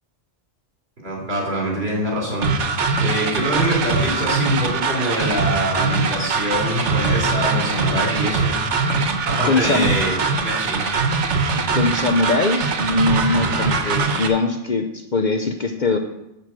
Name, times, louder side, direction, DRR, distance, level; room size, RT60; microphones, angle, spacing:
voice 1, 1.0-8.6 9.3-10.9, right 1 dB, 60° right, -2 dB, 3.7 m, -24 dB
sound 1, 2.4-14.3, right 4 dB, 80° right, 1.3 m, -22 dB
voice 2, 9.4-9.9 11.5-16.0, left 3 dB, 45° left, 5 dB, 0.8 m, -21 dB
11.5 x 4.7 x 7.6 m, 0.87 s
omnidirectional pair, 1.2 m